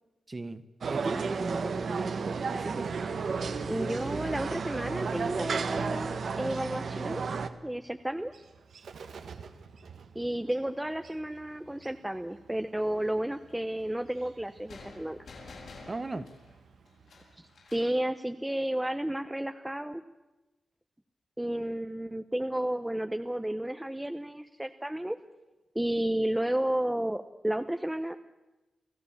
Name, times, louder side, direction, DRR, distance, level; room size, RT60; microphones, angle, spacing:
voice 1, 0.3-0.6 0.9-2.9 15.9-16.3, right 2 dB, 25° right, 13 dB, 1.2 m, -37 dB
sound 1, 0.8-7.5, right 5 dB, 60° right, 1.3 m, -32 dB
voice 2, 3.7-7.2 7.6-8.3 10.1-15.2 17.4-20.0 21.4-25.2 25.7-28.2, right 1 dB, 5° right, 7 dB, 0.8 m, -32 dB
Bird, 6.8-18.3, right 5 dB, 80° right, 1.5 m, -54 dB
sound 2, 14.7-18.0, left 3 dB, 75° left, 7.6 m, -50 dB
29.5 x 16.0 x 7.2 m, 1.1 s
wide cardioid pair, 125°, 0 cm